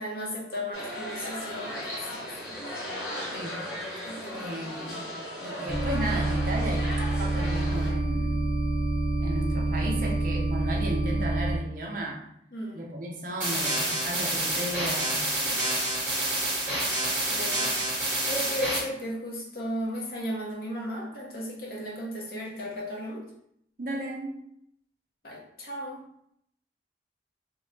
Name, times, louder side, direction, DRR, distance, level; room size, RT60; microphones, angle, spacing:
voice 1, 0.0-2.6 4.0-4.7 12.5-12.9 15.4-15.6 17.3-17.7 18.3-23.3 25.2-26.0, equal, 55° left, -2 dB, 0.8 m, -35 dB
sound 1, 0.7-7.9, left 1 dB, 70° left, 1.1 m, -37 dB
voice 2, 4.3-5.1 5.4-6.9 7.2-8.4 9.2-12.2 12.7-15.3 23.8-24.4, right 1 dB, 50° right, 0 dB, 0.5 m, -34 dB
sound 2, 5.7-11.6, right 2 dB, 20° left, 0.5 m, -27 dB
sound 3, 13.4-18.8, right 1 dB, 10° right, 1.1 m, -28 dB
3.0 x 2.2 x 3.7 m, 0.73 s
head